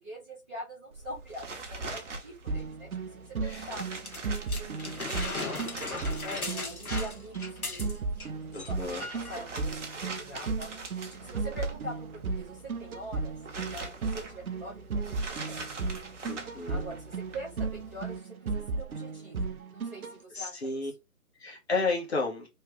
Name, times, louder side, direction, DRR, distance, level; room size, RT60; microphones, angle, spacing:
voice 1, 0.0-3.8 4.5-5.7 6.0-8.1 8.5-8.8 9.1-15.7 16.7-20.8, right 1 dB, 10° right, 0.7 m, -44 dB
sound 1, 0.9-18.2, right 3 dB, 55° right, 0.9 m, -43 dB
sound 2, 2.5-20.1, right 4 dB, 80° right, 0.6 m, -35 dB
sound 3, 4.1-8.3 8.5-8.7 9.0-9.4 10.2-10.3, left 3 dB, 85° left, 1.0 m, -37 dB
voice 2, 8.5-9.1 16.3-16.9 20.3-20.9 21.4-22.5, left 3 dB, 45° left, 1.2 m, -32 dB
3.1 x 2.4 x 3.1 m
figure-of-eight pair, 145°, 43 cm